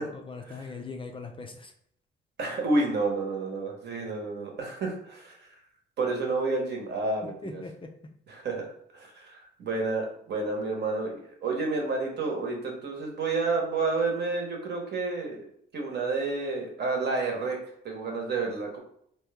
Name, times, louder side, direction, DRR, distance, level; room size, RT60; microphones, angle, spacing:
voice 1, 0.0-1.7 7.4-7.9, left 4 dB, 25° left, 3 dB, 0.4 m, -40 dB
voice 2, 2.4-5.5 6.0-7.6 8.3-15.4 15.7-17.6 17.8-18.8, right 3 dB, 60° right, 0 dB, 1.0 m, -30 dB
3.0 x 2.2 x 3.4 m, 0.68 s
cardioid pair, 90°, 20 cm